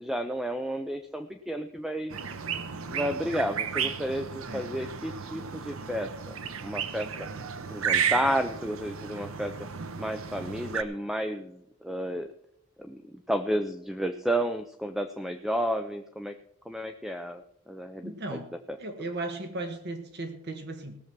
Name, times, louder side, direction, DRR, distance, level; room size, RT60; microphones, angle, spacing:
voice 1, 0.0-2.1 2.9-6.4 6.6-7.1 7.7-9.5 10.0-12.3 12.8-16.3 16.7-18.4 18.7-19.1, equal, ahead, 0.5 m, -32 dB
sound 1, 2.1-10.8, right 7 dB, 75° right, 0.8 m, -33 dB
voice 2, 18.0-18.5 18.8-21.0, right 2 dB, 50° right, 1.4 m, -36 dB
18.0 x 7.1 x 6.0 m
head